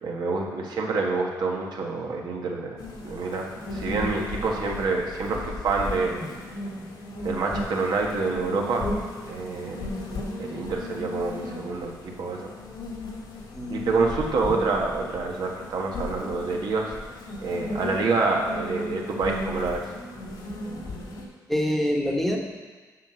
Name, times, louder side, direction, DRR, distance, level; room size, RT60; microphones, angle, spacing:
voice 1, 0.0-2.8 3.0-6.2 7.2-8.8 9.3-9.8 10.4-12.5 13.7-16.9 17.4-19.8, right 3 dB, 70° right, 0 dB, 1.5 m, -27 dB
sound 1, 2.8-21.2, left 2 dB, 75° left, 1.8 m, -36 dB
voice 2, 13.5-14.1 21.5-22.4, left 1 dB, 5° left, 0 dB, 1.2 m, -26 dB
8.5 x 6.1 x 6.4 m, 1.4 s
wide cardioid pair, 145°, 8 cm